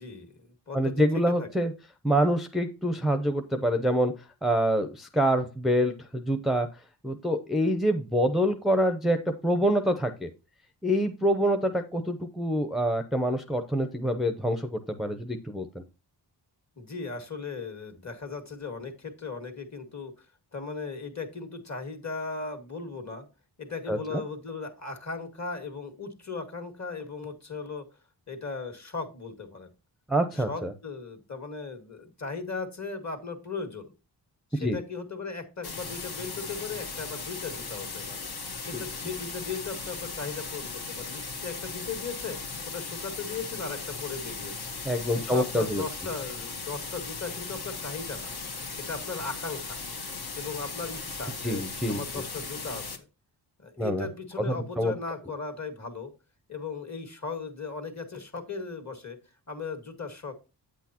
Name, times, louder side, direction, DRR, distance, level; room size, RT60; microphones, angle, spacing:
voice 1, 0.0-1.5 16.8-20.1 20.5-23.3 23.6-27.9 28.3-29.7 30.4-33.9 34.5-38.2 38.6-42.4 42.6-44.7 45.1-48.3 48.8-49.8 50.3-51.6 51.9-52.8 53.6-56.1 56.5-59.2 59.5-60.3, left 4 dB, 40° left, 5 dB, 2.0 m, -37 dB
voice 2, 0.7-1.7 2.0-4.1 4.4-6.7 7.0-9.2 9.4-10.3 10.8-15.8 23.9-24.2 30.1-30.7 34.6-34.8 38.7-38.8 44.8-45.8 51.4-52.0 53.8-54.1 54.5-54.9, equal, ahead, 6 dB, 0.7 m, -26 dB
sound 1, 35.6-53.0, left 4 dB, 60° left, 1.4 m, -37 dB
9.0 x 8.2 x 2.9 m, 0.29 s
wide cardioid pair, 115°, 42 cm